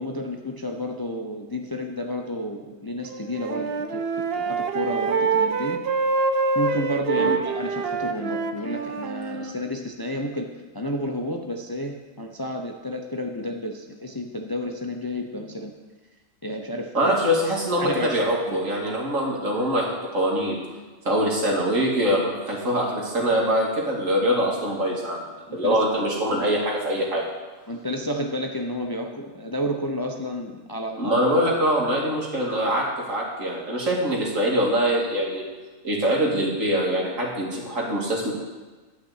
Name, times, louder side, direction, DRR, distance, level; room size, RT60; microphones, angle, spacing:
voice 1, 0.0-4.0 4.4-5.8 6.5-15.7 16.4-17.2 17.8-18.2 18.5-18.6 25.5-25.8 27.7-31.2, equal, 25° left, 3 dB, 0.6 m, -31 dB
Wind instrument woodwind instrument, 3.1-9.5, right 4 dB, 55° right, 0.9 m, -26 dB
voice 2, 16.9-20.6 21.0-25.2 25.5-27.2 31.0-35.4 35.8-38.3, equal, 75° right, -2 dB, 2.7 m, -23 dB
12.0 x 5.9 x 8.0 m, 1.3 s
omnidirectional pair, 1.4 m